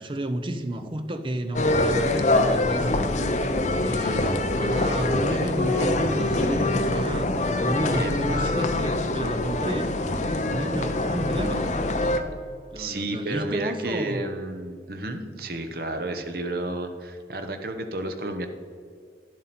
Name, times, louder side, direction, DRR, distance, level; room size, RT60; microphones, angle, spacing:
voice 1, 0.0-2.9 3.8-11.8 12.7-14.2, right 1 dB, 30° right, 8 dB, 0.6 m, -31 dB
sound 1, 1.5-12.2, left 2 dB, 40° left, 0.6 m, -24 dB
voice 2, 7.9-8.6 12.1-12.3 12.8-18.5, right 2 dB, 55° right, 6 dB, 0.9 m, -32 dB
10.5 x 7.6 x 4.2 m, 2.3 s
head